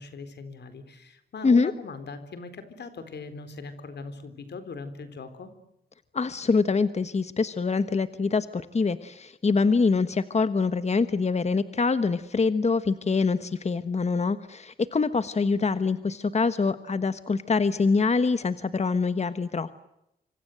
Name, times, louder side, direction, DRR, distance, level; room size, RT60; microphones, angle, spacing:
voice 1, 0.0-5.5, left 4 dB, 85° left, 11 dB, 4.0 m, -40 dB
voice 2, 6.1-19.8, left 4 dB, 40° left, 12 dB, 1.2 m, -25 dB
26.0 x 26.0 x 7.9 m, 0.83 s
wide cardioid pair, 105°, 17 cm